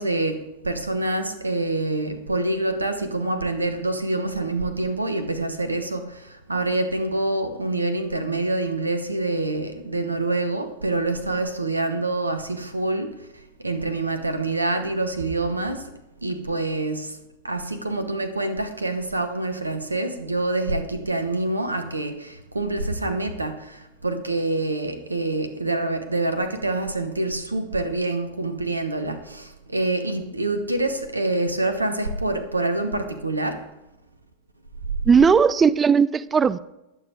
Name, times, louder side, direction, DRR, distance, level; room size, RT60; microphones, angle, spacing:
voice 1, 0.0-13.3 13.6-15.9 16.2-17.2 17.4-33.6, right 2 dB, 80° right, 1.0 m, -26 dB
voice 2, 35.1-36.6, right 6 dB, 20° right, 0.4 m, -17 dB
20.0 x 7.2 x 3.6 m
figure-of-eight pair, 90°, 0 cm